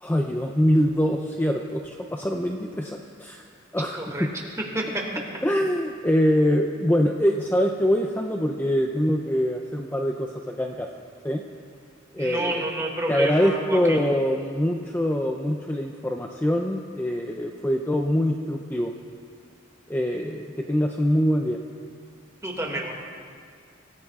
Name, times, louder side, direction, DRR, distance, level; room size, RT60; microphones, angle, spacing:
voice 1, 0.0-3.4 3.7-4.3 5.4-10.9 11.2-11.4 12.1-12.7 13.1-18.9 19.9-21.6, equal, 10° left, 2 dB, 0.6 m, -24 dB
voice 2, 3.9-4.3 4.7-4.8 12.2-14.0 22.4-22.9, right 1 dB, 15° right, -1 dB, 2.2 m, -29 dB
25.5 x 15.0 x 2.4 m, 2.2 s
head